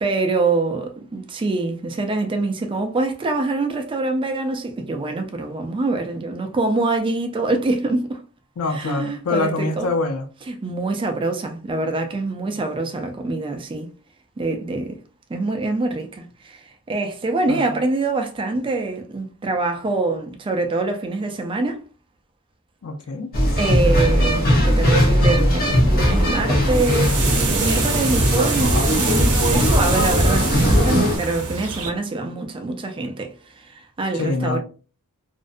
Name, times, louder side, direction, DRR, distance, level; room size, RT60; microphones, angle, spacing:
voice 1, 0.0-8.2 8.7-9.9 10.5-13.9 14.4-15.0 15.3-21.8 23.6-34.6, right 3 dB, 25° right, 0.3 m, -25 dB
voice 2, 8.6-10.3 12.5-12.6 17.5-17.8 22.8-23.3 34.1-34.6, left 3 dB, 70° left, 0.5 m, -25 dB
sound 1, 23.3-31.2, equal, 45° left, 0.8 m, -18 dB
sound 2, 26.0-31.9, right 5 dB, 85° right, 0.7 m, -26 dB
2.5 x 2.1 x 2.4 m
head